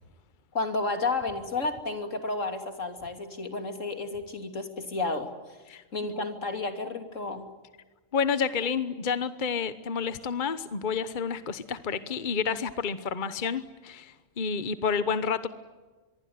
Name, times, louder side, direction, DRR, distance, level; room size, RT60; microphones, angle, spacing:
voice 1, 0.5-5.3 5.9-7.4, left 3 dB, 80° left, 6 dB, 3.4 m, -31 dB
voice 2, 5.7-6.1 8.1-15.5, left 6 dB, 40° left, 13 dB, 1.2 m, -30 dB
25.5 x 23.0 x 9.6 m, 1.3 s
omnidirectional pair, 1.3 m